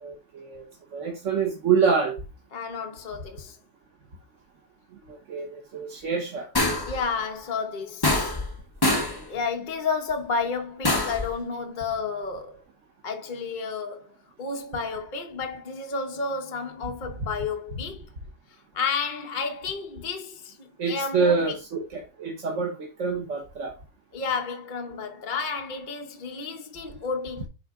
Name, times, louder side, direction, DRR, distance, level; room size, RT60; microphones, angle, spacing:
voice 1, 0.0-0.7 0.9-2.2 5.1-6.5 20.8-23.7, right 5 dB, 80° right, 1.5 m, -26 dB
voice 2, 2.5-3.6 6.8-8.3 9.3-12.6 13.0-14.1 14.4-18.0 18.7-21.5 24.1-27.5, left 5 dB, 40° left, 1.1 m, -31 dB
sound 1, 6.5-7.0 8.0-8.5 8.8-9.2 10.8-11.3, left 2 dB, 20° left, 1.0 m, -24 dB
10.5 x 4.1 x 3.6 m
omnidirectional pair, 1.3 m